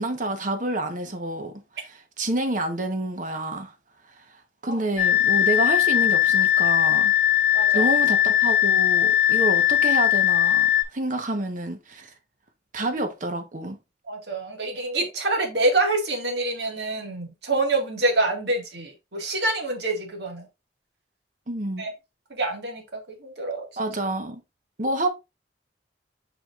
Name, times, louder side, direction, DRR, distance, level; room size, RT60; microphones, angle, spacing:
voice 1, 0.0-3.7 4.2-4.4 4.6-7.1 7.7-12.1 12.7-13.8 21.5-21.9 23.8-24.4 24.8-25.1, right 2 dB, 45° right, 1.2 m, -28 dB
sound 1, 5.0-10.8, left 11 dB, 55° left, 1.6 m, -19 dB
voice 2, 7.5-7.9 14.1-20.5 21.8-21.9 22.3-22.8 23.2-23.7, right 2 dB, 70° right, 2.1 m, -26 dB
7.6 x 5.0 x 2.5 m
head